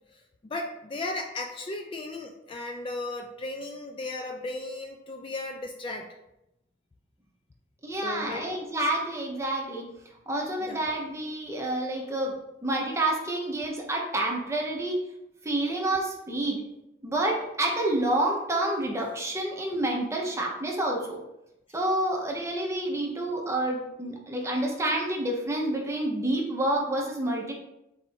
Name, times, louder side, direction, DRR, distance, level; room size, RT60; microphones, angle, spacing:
voice 1, 0.1-6.1 8.0-8.5 10.6-10.8, left 2 dB, 30° left, 2 dB, 0.3 m, -36 dB
voice 2, 7.8-9.8 10.3-12.3 12.6-15.1 15.4-16.6 17.0-21.2 21.7-27.5, right 1 dB, 15° right, -1 dB, 0.8 m, -28 dB
4.2 x 2.6 x 4.4 m, 0.88 s
head